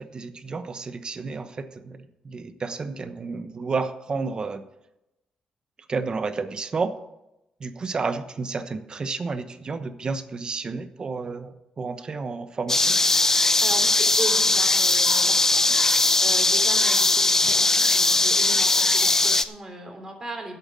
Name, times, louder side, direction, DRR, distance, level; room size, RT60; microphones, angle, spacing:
voice 1, 0.0-4.6 5.9-6.9 7.6-13.0, right 4 dB, 40° right, 10 dB, 1.0 m, -31 dB
sound 1, 12.7-19.4, left 2 dB, 20° left, 0.7 m, -20 dB
voice 2, 13.5-20.6, right 2 dB, 25° right, 3 dB, 3.3 m, -37 dB
8.4 x 8.0 x 8.9 m, 0.91 s
cardioid pair, 85°, 2 cm